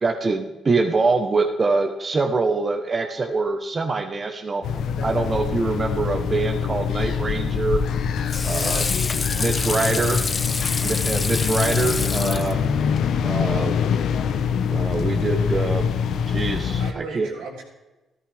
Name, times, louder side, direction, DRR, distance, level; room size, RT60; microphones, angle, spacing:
voice 1, 0.0-4.6 5.0-7.8 8.4-8.8 9.4-10.2 10.8-12.6 13.2-13.8 14.7-15.9 16.3-17.3, right 3 dB, 35° right, 4 dB, 1.2 m, -24 dB
sound 1, 4.6-16.9, left 7 dB, 75° left, 0.9 m, -24 dB
Water / Sink (filling or washing), 7.6-13.1, left 4 dB, 30° left, 0.7 m, -28 dB
voice 2, 8.3-8.9 9.2-9.3 9.9-10.1 16.8-17.6, right 4 dB, 90° right, -2 dB, 3.8 m, -37 dB
14.0 x 13.5 x 3.5 m, 1.1 s
cardioid pair, 90°, 0 cm